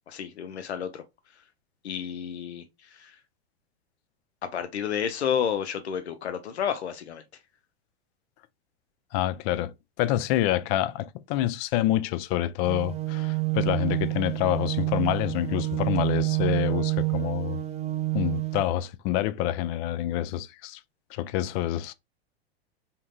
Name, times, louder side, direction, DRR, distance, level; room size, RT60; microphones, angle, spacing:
voice 1, 0.1-1.0 1.8-3.2 4.4-7.2, left 8 dB, 85° left, 0.6 m, -31 dB
voice 2, 9.1-17.6 18.1-20.8 21.1-21.9, left 13 dB, 40° left, 0.4 m, -27 dB
sound 1, 12.6-18.6, right 20 dB, 20° right, 0.4 m, -28 dB
3.6 x 2.7 x 2.2 m
hypercardioid pair, 100°, 32 cm